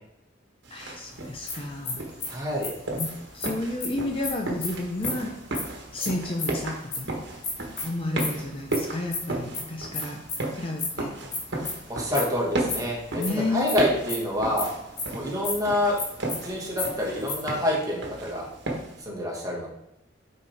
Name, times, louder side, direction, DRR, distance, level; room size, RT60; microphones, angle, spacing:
sound 1, 0.6-19.0, right 2 dB, 65° right, 1.3 m, -35 dB
voice 1, 0.7-2.0 3.0-5.3 5.9-7.1 7.8-10.2 10.5-11.1 13.2-13.7, left 2 dB, 30° left, 2 dB, 0.6 m, -31 dB
sound 2, 1.2-7.0 7.4-14.7 15.0-15.1 15.4-15.5 15.8-17.6, left 4 dB, 75° left, 2.0 m, -33 dB
voice 2, 2.3-2.7 11.9-13.2 13.5-14.7 15.1-16.0 16.4-18.5 19.0-19.7, left 1 dB, 20° right, -3 dB, 1.7 m, -27 dB
8.6 x 4.3 x 3.4 m, 0.86 s
head